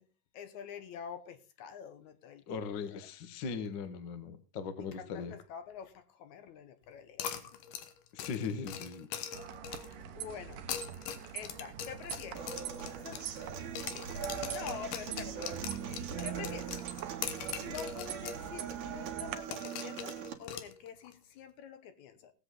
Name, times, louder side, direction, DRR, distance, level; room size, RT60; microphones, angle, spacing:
voice 1, 0.3-3.0 4.8-7.3 10.0-10.6 11.3-12.6 13.0-13.2 14.2-16.7 17.6-22.3, left 8 dB, 70° left, 10 dB, 2.3 m, -47 dB
voice 2, 2.5-5.3 8.1-9.1, left 5 dB, 45° left, 10 dB, 1.5 m, -39 dB
sound 1, 7.2-10.0 10.5-13.5 13.8-18.4 18.7-18.8 19.5-21.1, left 9 dB, 90° left, 2.8 m, -42 dB
sound 2, 9.3-19.4, right 8 dB, 90° right, 2.6 m, -44 dB
Human voice / Acoustic guitar, 12.3-20.3, right 9 dB, 70° right, 3.0 m, -41 dB
19.5 x 7.9 x 3.8 m, 0.31 s
omnidirectional pair, 3.7 m